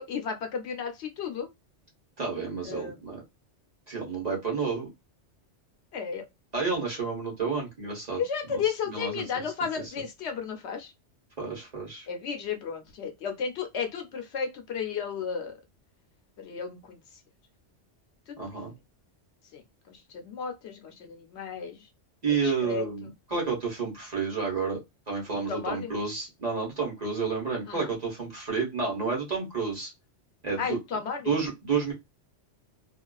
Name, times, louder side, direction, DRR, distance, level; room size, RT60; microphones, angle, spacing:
voice 1, 0.0-1.5 2.6-3.0 5.9-6.2 8.2-10.9 12.1-15.5 16.4-17.0 18.3-18.4 19.5-21.9 22.4-23.1 25.5-25.9 27.7-27.9 30.6-31.3, left 6 dB, 75° left, 0.9 m, -33 dB
voice 2, 2.2-3.2 3.9-4.9 6.5-8.2 8.5-8.6 8.9-9.2 11.4-12.1 18.4-18.7 22.2-24.8 25.1-29.9 30.4-30.8 31.3-31.9, right 5 dB, 40° right, 1.0 m, -30 dB
2.4 x 2.3 x 2.3 m
omnidirectional pair, 1.2 m